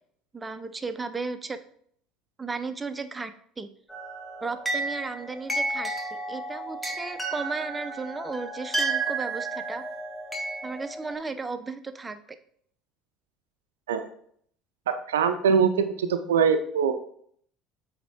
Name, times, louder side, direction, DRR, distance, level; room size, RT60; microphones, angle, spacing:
voice 1, 0.3-1.6 2.4-3.7 4.4-5.9 6.3-9.8 10.6-12.2, right 4 dB, 20° right, 10 dB, 0.6 m, -35 dB
sound 1, 3.9-11.1, right 3 dB, ahead, 1.5 m, -32 dB
voice 2, 14.9-16.9, right 6 dB, 80° right, 9 dB, 0.4 m, -23 dB
8.1 x 3.5 x 3.7 m, 0.64 s
figure-of-eight pair, 65°, 0 cm